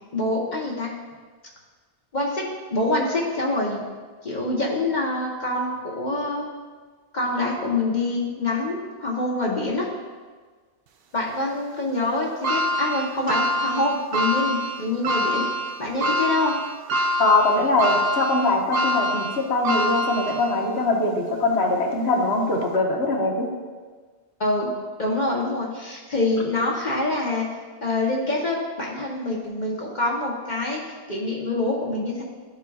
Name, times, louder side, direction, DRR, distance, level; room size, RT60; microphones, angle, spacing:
voice 1, 0.1-0.9 2.1-3.8 4.2-6.5 7.1-9.9 11.1-15.5 15.8-16.5 24.4-24.7 25.0-27.4 27.8-30.8 31.1-32.2, left 2 dB, 45° left, -3 dB, 1.0 m, -25 dB
sound 1, 12.4-20.8 21.3-21.4 22.6-22.7, equal, 60° right, 0.7 m, -25 dB
voice 2, 17.2-23.5, left 2 dB, 65° left, -1 dB, 1.4 m, -22 dB
12.0 x 4.6 x 2.3 m, 1.5 s
omnidirectional pair, 1.2 m